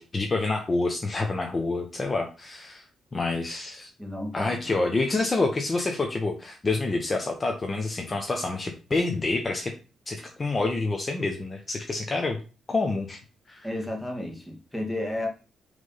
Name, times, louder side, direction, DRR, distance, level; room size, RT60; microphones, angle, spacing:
voice 1, 0.0-2.8 3.1-3.9 4.3-9.7 10.1-12.4 12.7-13.2 13.5-13.7, left 3 dB, 30° left, 1.1 m, -27 dB
voice 2, 4.0-4.8 13.6-15.3, left 1 dB, 5° left, 2.1 m, -32 dB
6.6 x 3.6 x 5.6 m
cardioid pair, 95°, 0 cm